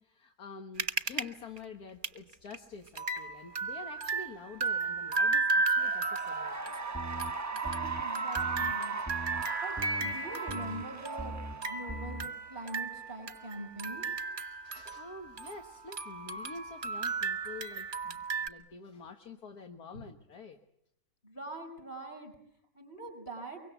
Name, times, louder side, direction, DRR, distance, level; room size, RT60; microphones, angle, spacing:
voice 1, 0.0-6.7 7.4-7.6 14.6-20.6, left 4 dB, 65° left, 4 dB, 1.9 m, -47 dB
sound 1, 0.8-1.3 1.6-1.7 2.0-2.2 2.5-2.6 3.0-15.7 15.9-18.5, right 4 dB, 35° right, 1.2 m, -34 dB
Cheering / Applause, 5.7-12.4, right 4 dB, 15° right, 0.6 m, -39 dB
sound 2, 6.9-7.3 7.6-8.0 8.4-8.7 9.1-9.4 9.8-10.1 10.5-10.8 11.2-11.5 11.9-12.3, right 1 dB, 5° left, 1.2 m, -41 dB
voice 2, 7.5-9.0 9.6-14.1 21.2-22.3 22.7-23.6, right 2 dB, 35° left, 7 dB, 6.0 m, -43 dB
24.0 x 24.0 x 8.1 m, 0.73 s
omnidirectional pair, 1.8 m